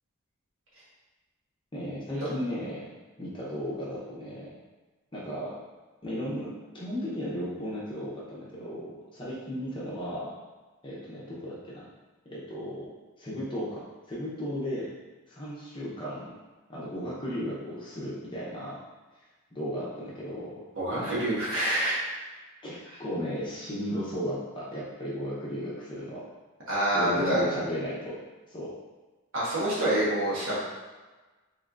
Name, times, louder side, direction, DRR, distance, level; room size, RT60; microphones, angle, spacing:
voice 1, 1.7-2.9 3.2-4.6 5.1-5.6 6.0-10.3 10.8-11.9 12.3-12.9 13.2-14.9 15.3-16.3 16.7-18.8 19.5-20.6 20.9-21.1 22.6-26.2 26.9-28.2 28.5-28.7, equal, 20° left, -7 dB, 0.7 m, -35 dB
voice 2, 20.8-22.0 26.7-27.4 29.3-30.6, right 1 dB, 75° right, -8 dB, 1.3 m, -26 dB
3.5 x 3.2 x 2.5 m, 1.2 s
head